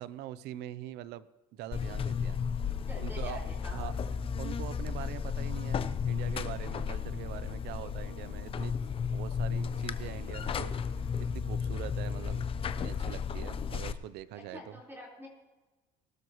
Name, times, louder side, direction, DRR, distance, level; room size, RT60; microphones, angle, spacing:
voice 1, 0.0-2.4 3.0-3.4 3.7-3.9 4.4-8.7 9.1-10.7 11.2-12.4 12.8-14.8, right 13 dB, 70° right, 17 dB, 0.6 m, -43 dB
Buzz, 1.7-13.9, left 6 dB, 30° left, 0.7 m, -34 dB
voice 2, 2.8-4.1 14.3-15.3, left 1 dB, 15° right, -2 dB, 4.4 m, -46 dB
20.5 x 12.5 x 3.1 m, 1.2 s
cardioid pair, 130°, 18 cm